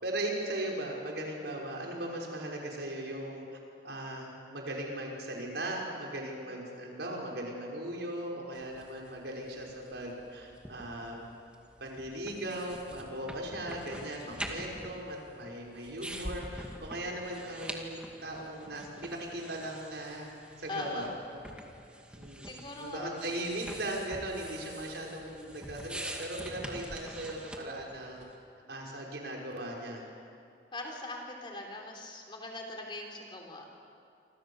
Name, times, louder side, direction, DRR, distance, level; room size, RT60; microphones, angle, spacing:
voice 1, 0.0-3.5 3.8-11.2 11.8-21.4 22.1-28.3 28.7-30.0, right 1 dB, 70° right, -1 dB, 5.6 m, -38 dB
sound 1, 8.5-28.3, right 1 dB, 5° right, 2.2 m, -46 dB
voice 2, 20.7-21.1 22.4-23.1 30.7-33.7, left 2 dB, 25° left, 1 dB, 3.7 m, -40 dB
28.0 x 26.5 x 7.3 m, 2.5 s
head